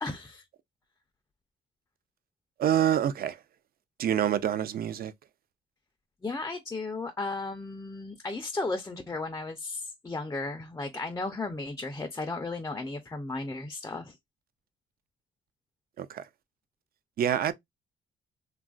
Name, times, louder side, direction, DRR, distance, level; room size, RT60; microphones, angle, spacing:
voice 1, 0.0-0.4 6.2-14.2, left 3 dB, 15° left, 0.4 m, -35 dB
voice 2, 2.6-3.4 4.0-5.1 16.0-16.3 17.2-17.5, right 10 dB, 50° right, 0.4 m, -26 dB
2.9 x 2.3 x 2.3 m
cardioid pair, 90°, 20 cm